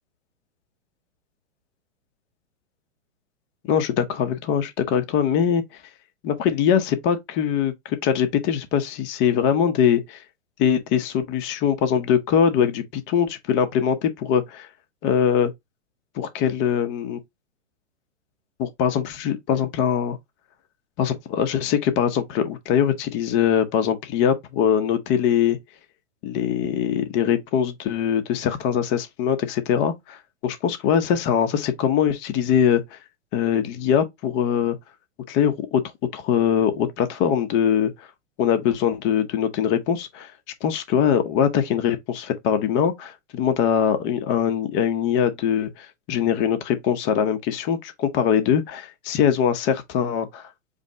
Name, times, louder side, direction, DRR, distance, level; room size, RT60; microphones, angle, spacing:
voice 1, 3.7-5.6 6.2-10.2 10.6-14.7 15.0-15.5 16.2-17.2 18.6-20.2 21.0-25.6 26.2-33.0 33.3-34.8 35.3-35.8 36.1-37.9 38.4-40.3 40.6-50.4, left 8 dB, 30° left, 0.8 m, -22 dB
5.0 x 2.1 x 3.6 m
hypercardioid pair, 120°, 37 cm